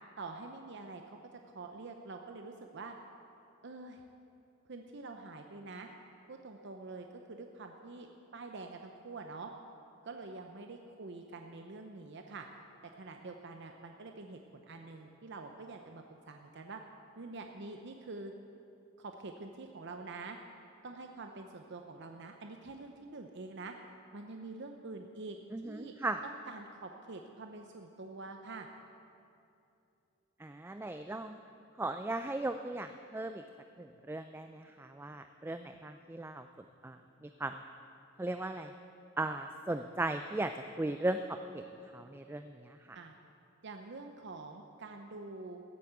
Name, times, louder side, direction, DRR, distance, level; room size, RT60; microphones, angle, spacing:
voice 1, 0.2-1.2 1.5-3.0 3.6-4.0 4.7-5.9 6.3-9.5 10.0-12.5 13.0-16.8 17.2-18.3 19.0-20.4 20.8-23.7 24.1-25.4 25.6-25.9 26.2-28.7 42.9-43.2 43.6-45.6, right 3 dB, 60° right, 4 dB, 0.7 m, -46 dB
voice 2, 25.5-26.2 30.4-31.4 31.8-33.4 33.8-36.5 36.8-37.6 38.2-38.7 39.2-40.5 40.8-41.6 41.9-43.0, right 2 dB, 10° right, 8 dB, 0.3 m, -37 dB
14.5 x 8.4 x 8.0 m, 2.7 s
head